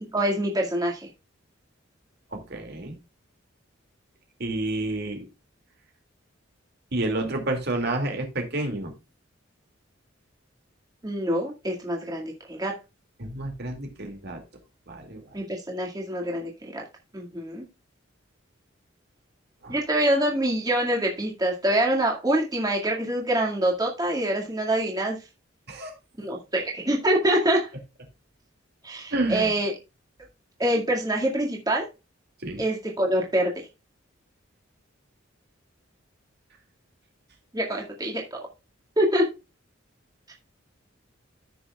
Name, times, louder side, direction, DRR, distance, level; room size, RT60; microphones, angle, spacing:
voice 1, 0.1-1.1 11.0-12.8 15.3-16.8 17.1-17.7 19.7-25.2 26.2-27.7 28.8-29.7 30.6-31.9 32.6-33.7 37.5-38.5 39.0-39.3, right 1 dB, 20° right, -1 dB, 2.0 m, -25 dB
voice 2, 2.3-2.9 4.4-5.3 6.9-8.9 13.2-14.4 14.9-15.2 19.6-19.8 25.7-25.9 29.1-29.5 32.4-32.6, right 2 dB, 55° right, 3 dB, 2.4 m, -29 dB
14.5 x 6.3 x 2.3 m, 0.27 s
head